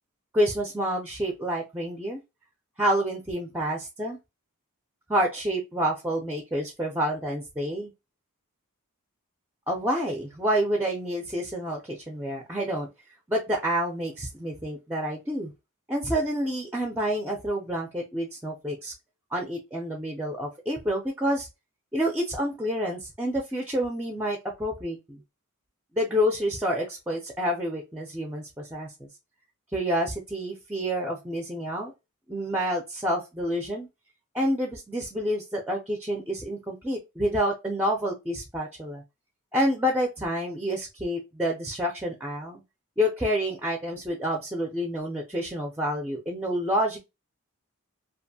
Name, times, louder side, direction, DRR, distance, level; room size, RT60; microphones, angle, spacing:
voice 1, 0.3-2.2 2.8-4.2 5.1-7.9 9.7-12.9 13.3-15.5 15.9-18.9 19.3-21.5 21.9-25.2 25.9-29.1 29.7-31.9 32.3-33.9 34.3-39.0 39.5-42.6 43.0-47.0, equal, 10° right, 1 dB, 0.4 m, -28 dB
2.6 x 2.5 x 2.6 m, 0.24 s
head